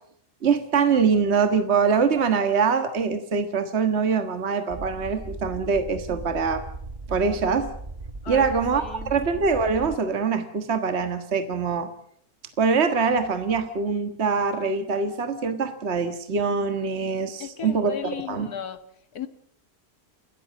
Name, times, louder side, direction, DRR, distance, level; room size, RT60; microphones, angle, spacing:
voice 1, 0.4-6.6 7.1-7.7 8.3-11.9 12.6-18.5, right 5 dB, 45° right, 8 dB, 1.8 m, -24 dB
sound 1, 4.7-10.0, right 3 dB, 30° right, 1.0 m, -38 dB
voice 2, 8.2-9.1 17.4-18.8 19.1-19.3, left 8 dB, 85° left, 11 dB, 2.0 m, -35 dB
29.5 x 13.5 x 7.6 m, 0.69 s
omnidirectional pair, 1.6 m